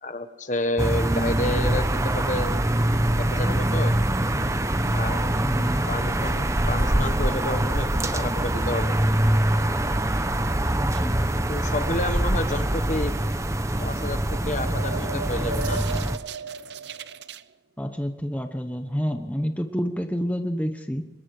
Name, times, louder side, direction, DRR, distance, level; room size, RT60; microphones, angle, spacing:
voice 1, 0.0-2.5 3.2-3.9 4.9-5.4 5.9-9.0 11.5-13.1 13.8-15.8, left 2 dB, 40° left, 9 dB, 1.4 m, -30 dB
sound 1, 0.8-16.2, right 1 dB, 15° right, 0.9 m, -24 dB
voice 2, 5.4-5.8 10.8-11.2 17.8-21.0, equal, 10° left, 5 dB, 1.0 m, -28 dB
sound 2, 14.1-17.4, right 4 dB, 60° right, 0.7 m, -35 dB
25.0 x 21.5 x 5.0 m, 1.0 s
head